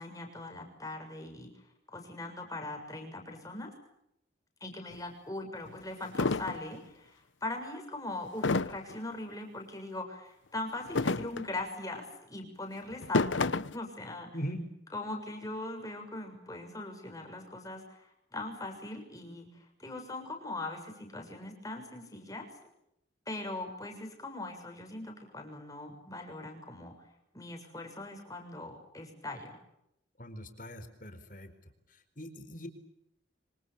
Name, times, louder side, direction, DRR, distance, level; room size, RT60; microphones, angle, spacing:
voice 1, 0.0-1.5 1.9-3.7 4.6-14.4 14.9-22.5 23.3-26.9 27.3-29.6, left 2 dB, 20° left, 3 dB, 6.7 m, -41 dB
sound 1, 4.9-5.0 5.7-5.8 6.1-6.6 8.4-8.9 10.8-11.6 12.9-13.8, left 3 dB, 80° left, 0.9 m, -29 dB
voice 2, 14.3-14.7 30.2-31.5 31.9-32.7, equal, 45° left, 8 dB, 4.3 m, -41 dB
26.0 x 26.0 x 7.0 m, 0.81 s
head